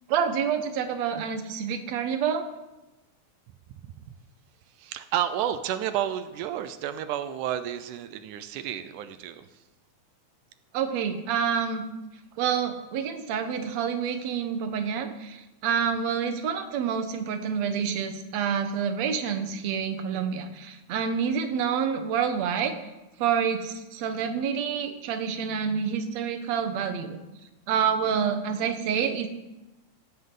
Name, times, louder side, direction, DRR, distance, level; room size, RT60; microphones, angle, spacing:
voice 1, 0.1-2.4 10.7-11.8 12.4-22.7 23.2-27.2 27.7-29.3, right 7 dB, 65° right, 7 dB, 2.3 m, -28 dB
voice 2, 4.7-9.6, right 10 dB, 90° right, 11 dB, 2.3 m, -31 dB
16.0 x 16.0 x 3.9 m, 1.0 s
omnidirectional pair, 3.5 m